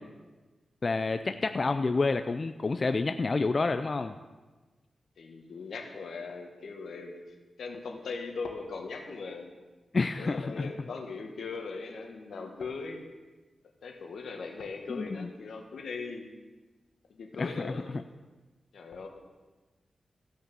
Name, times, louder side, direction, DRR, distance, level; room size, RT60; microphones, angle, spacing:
voice 1, 0.8-4.2 9.9-10.7 14.9-15.3 17.4-18.0, left 3 dB, 45° left, 9 dB, 0.5 m, -29 dB
voice 2, 5.2-7.2 7.6-9.5 10.2-13.1 13.8-16.2 17.1-17.9 18.7-19.1, left 4 dB, 85° left, 3 dB, 1.7 m, -39 dB
15.0 x 6.5 x 7.0 m, 1.3 s
cardioid pair, 80°, 0 cm